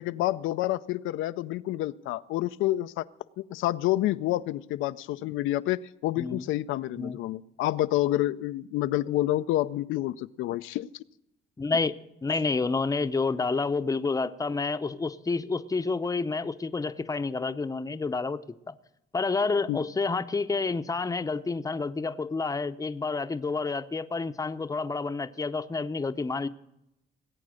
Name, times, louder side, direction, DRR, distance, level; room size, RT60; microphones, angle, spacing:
voice 1, 0.0-3.0 3.4-10.9 19.7-19.8, left 15 dB, 90° left, 12 dB, 0.4 m, -28 dB
voice 2, 6.2-6.5 7.0-7.2 11.6-11.9 12.2-18.7 19.1-26.5, left 4 dB, 15° left, 11 dB, 0.6 m, -29 dB
19.5 x 8.5 x 6.3 m, 0.86 s
cardioid pair, 90°, 20 cm